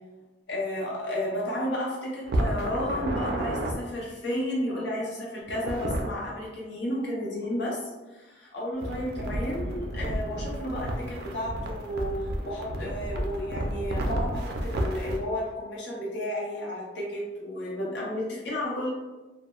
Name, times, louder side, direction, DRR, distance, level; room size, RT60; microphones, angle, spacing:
voice 1, 0.5-18.9, left 1 dB, 65° left, -4 dB, 0.6 m, -32 dB
sound 1, 2.3-3.7 5.5-6.1 8.8-15.2, right 1 dB, 60° right, 0.4 m, -31 dB
2.2 x 2.0 x 3.0 m, 1.1 s
head